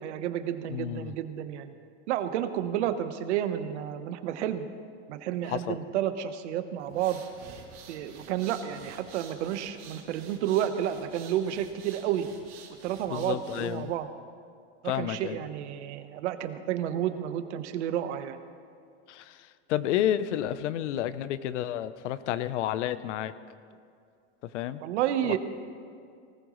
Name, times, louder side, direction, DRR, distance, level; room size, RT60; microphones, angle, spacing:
voice 1, 0.0-1.7 2.1-4.7 5.1-7.2 7.9-12.3 12.8-14.1 14.8-18.4 24.8-25.4, right 11 dB, 75° right, 10 dB, 1.1 m, -31 dB
voice 2, 0.7-1.1 5.5-5.8 13.1-13.9 14.8-15.4 19.1-23.3 24.5-24.8 25.2-25.3, left 11 dB, 90° left, 14 dB, 0.8 m, -31 dB
sound 1, 6.8-13.9, right 6 dB, 55° right, 3.1 m, -50 dB
19.0 x 18.5 x 3.1 m, 2.3 s
supercardioid pair, 165°, 35 cm